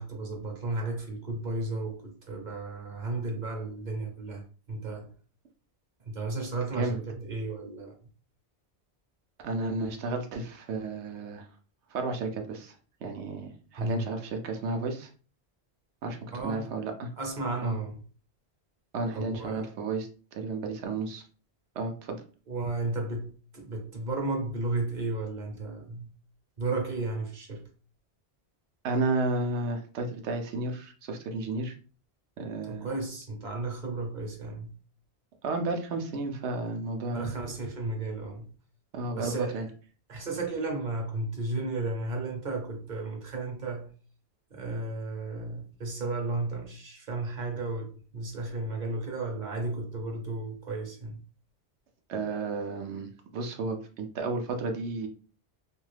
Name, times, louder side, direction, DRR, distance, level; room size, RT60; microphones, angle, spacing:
voice 1, 0.0-4.4 4.7-5.1 6.1-7.9 13.8-14.1 16.3-16.7 17.2-18.0 19.1-19.7 22.5-26.1 26.6-27.6 32.7-34.8 37.1-38.5 39.2-39.6 40.1-43.9 44.5-51.2, right 2 dB, 50° right, 0.8 m, -33 dB
voice 2, 9.4-11.5 11.9-12.7 13.0-15.1 16.0-16.2 16.4-17.1 17.6-17.7 18.9-21.2 21.8-22.2 28.8-31.7 32.4-32.9 35.4-37.3 38.9-39.7 52.1-55.1, right 3 dB, 90° right, 0.9 m, -32 dB
2.6 x 2.3 x 3.2 m
omnidirectional pair, 1.1 m